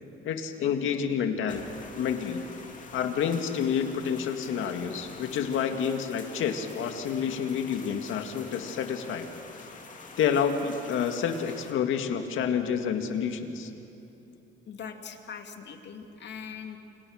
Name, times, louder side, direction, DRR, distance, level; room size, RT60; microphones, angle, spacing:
voice 1, 0.2-2.4 2.9-9.3 10.2-13.7, left 7 dB, 85° left, 6 dB, 2.1 m, -29 dB
sound 1, 1.5-11.7, left 4 dB, 40° left, 2.8 m, -47 dB
voice 2, 14.7-16.8, left 7 dB, 60° left, 5 dB, 2.5 m, -41 dB
30.0 x 26.0 x 6.5 m, 2.9 s
cardioid pair, 90°, 20 cm